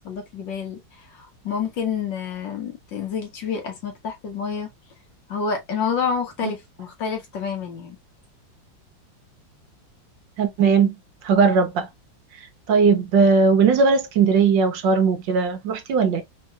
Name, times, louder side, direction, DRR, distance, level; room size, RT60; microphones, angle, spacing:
voice 1, 0.0-0.8 1.1-4.7 5.3-8.0, left 6 dB, 70° left, 2.0 m, -28 dB
voice 2, 10.4-11.0 11.2-11.9 12.7-16.2, right 5 dB, 75° right, 1.5 m, -18 dB
4.4 x 3.0 x 2.3 m
omnidirectional pair, 2.1 m